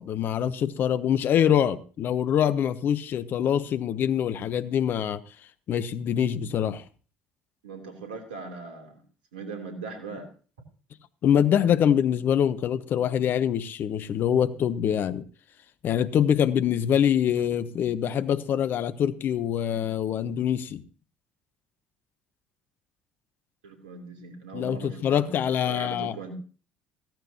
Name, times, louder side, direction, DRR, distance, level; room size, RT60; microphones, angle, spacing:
voice 1, 0.0-5.2 5.7-6.8 11.2-15.2 15.8-20.8 24.5-26.2, left 9 dB, 45° left, 0.9 m, -24 dB
voice 2, 7.6-9.0 9.3-10.3 23.6-25.3 25.7-26.3, right 4 dB, 70° right, 3.2 m, -39 dB
16.0 x 15.0 x 2.9 m
figure-of-eight pair, 55°, 5 cm